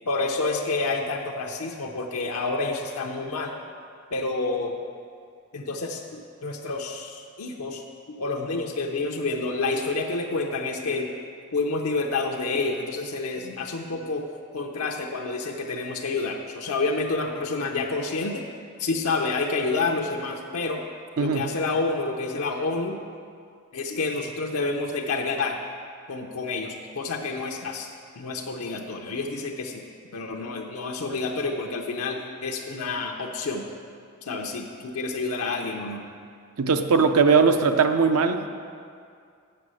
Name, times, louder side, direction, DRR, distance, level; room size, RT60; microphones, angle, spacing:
voice 1, 0.1-3.5 4.1-4.7 5.5-7.8 8.1-11.1 11.5-14.3 14.5-18.4 18.8-20.8 21.2-23.0 23.7-25.6 26.1-27.9 28.2-29.8 30.1-33.7 34.2-36.0, left 3 dB, 85° left, 1 dB, 0.6 m, -29 dB
voice 2, 21.2-21.5 36.6-38.5, right 5 dB, 85° right, 8 dB, 0.6 m, -20 dB
7.5 x 6.8 x 6.2 m, 2.3 s
head